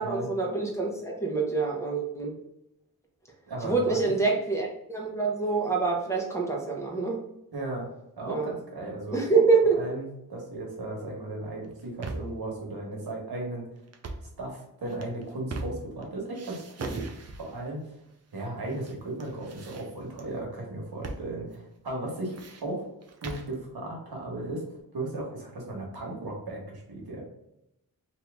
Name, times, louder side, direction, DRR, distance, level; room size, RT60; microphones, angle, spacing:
voice 1, 0.0-2.4 3.6-7.2 8.3-8.5 9.1-9.9, right 4 dB, 5° left, -1 dB, 1.0 m, -26 dB
voice 2, 3.5-4.0 7.5-7.9 8.2-9.2 9.8-13.6 14.4-17.0 17.4-17.9 18.3-22.3 22.6-22.9 23.2-24.6 24.9-27.2, right 2 dB, 75° right, -1 dB, 1.3 m, -36 dB
sound 1, 11.6-12.4 13.9-14.3 14.9-16.0 16.3-17.6 18.4-18.9 19.2-20.2 21.0-21.3 21.5-21.6 22.1-23.5, right 3 dB, 40° right, 0.6 m, -39 dB
2.8 x 2.8 x 3.5 m, 0.84 s
cardioid pair, 65°, 38 cm